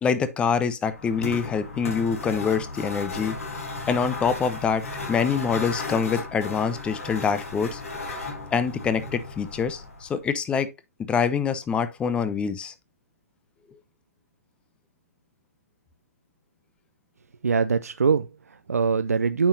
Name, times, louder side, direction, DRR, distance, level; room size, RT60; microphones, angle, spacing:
voice 1, 0.0-3.4 3.9-7.8 8.5-10.7 11.1-12.7, left 6 dB, 10° left, 0.7 m, -25 dB
sound 1, 0.9-10.2, left 3 dB, 70° left, 3.6 m, -35 dB
voice 2, 17.4-19.5, right 5 dB, 70° right, 0.5 m, -23 dB
8.8 x 5.6 x 2.6 m
figure-of-eight pair, 125°, 8 cm